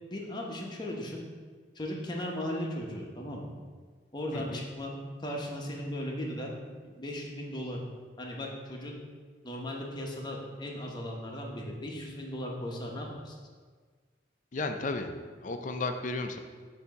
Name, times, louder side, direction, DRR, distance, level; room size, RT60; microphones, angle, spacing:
voice 1, 0.1-1.2 1.7-3.5 4.1-4.9 5.2-6.5 6.8-7.8 8.2-9.0 9.4-13.4, left 1 dB, 25° left, -1 dB, 0.8 m, -37 dB
voice 2, 4.3-4.6 14.5-15.1 15.4-16.4, left 3 dB, 45° left, 6 dB, 0.4 m, -33 dB
6.9 x 2.8 x 5.2 m, 1.6 s
head